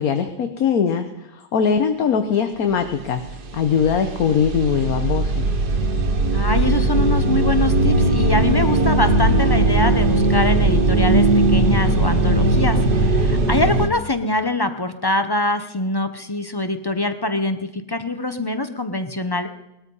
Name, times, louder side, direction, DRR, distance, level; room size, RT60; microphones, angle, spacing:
voice 1, 0.0-3.2 3.5-5.5, left 7 dB, 65° left, 7 dB, 1.4 m, -21 dB
sound 1, 2.9-3.0 3.2-13.9, right 2 dB, 80° right, 1.8 m, -18 dB
voice 2, 6.3-19.5, left 2 dB, 30° left, 9 dB, 0.4 m, -24 dB
19.5 x 13.0 x 5.5 m, 0.90 s
omnidirectional pair, 1.7 m